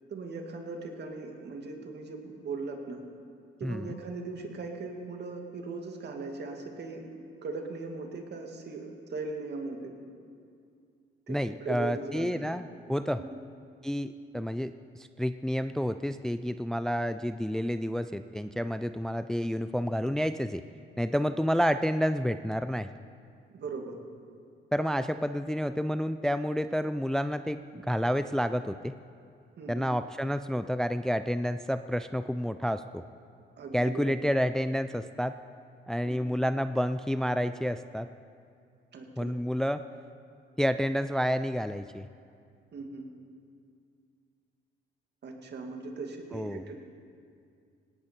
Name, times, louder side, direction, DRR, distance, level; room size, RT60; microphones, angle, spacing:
voice 1, 0.1-3.0 3.6-7.0 7.4-9.9 11.3-12.4 13.2-13.4 23.5-24.0 29.6-29.9 33.6-34.2 36.0-36.1 38.9-39.3 42.7-43.0 45.2-46.8, right 3 dB, 60° right, 3 dB, 2.2 m, -39 dB
voice 2, 3.6-4.0 11.3-13.2 13.8-20.6 21.0-22.9 24.7-28.9 29.7-33.0 33.7-35.3 35.9-38.1 39.2-39.8 40.6-42.1 46.3-46.6, equal, 5° left, 11 dB, 0.4 m, -29 dB
18.5 x 17.5 x 4.4 m, 2.3 s
cardioid pair, 90°, 20 cm